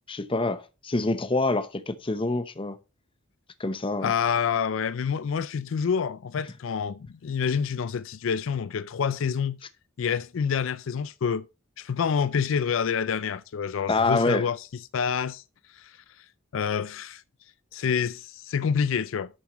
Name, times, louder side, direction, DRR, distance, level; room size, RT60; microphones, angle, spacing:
voice 1, 0.1-2.8 3.6-4.1 13.9-14.5, left 2 dB, 25° left, 0.8 m, -26 dB
voice 2, 4.0-9.6 10.0-11.4 11.8-14.7 14.9-15.4 15.7-16.2 16.5-17.2 17.7-19.3, left 6 dB, 70° left, 0.4 m, -27 dB
11.0 x 7.1 x 3.0 m
head